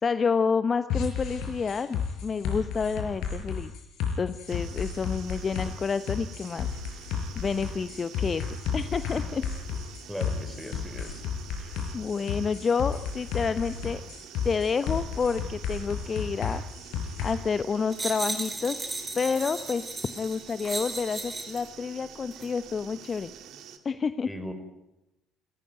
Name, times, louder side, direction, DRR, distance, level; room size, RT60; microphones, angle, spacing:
voice 1, 0.0-3.7 4.2-6.7 7.4-9.4 11.6-14.0 14.4-16.6 17.2-18.9 19.1-23.3 23.8-24.3, left 5 dB, 35° left, 12 dB, 0.9 m, -29 dB
sound 1, 0.9-17.3, left 7 dB, 60° left, 5.7 m, -33 dB
sound 2, 4.5-23.8, right 9 dB, 60° right, 2.2 m, -48 dB
voice 2, 10.1-11.2 24.2-24.5, equal, ahead, 6 dB, 5.2 m, -38 dB
sound 3, 17.9-21.7 22.3-22.5, right 2 dB, 20° right, 4.7 m, -35 dB
29.5 x 15.0 x 9.2 m, 0.93 s
figure-of-eight pair, 55°, 0 cm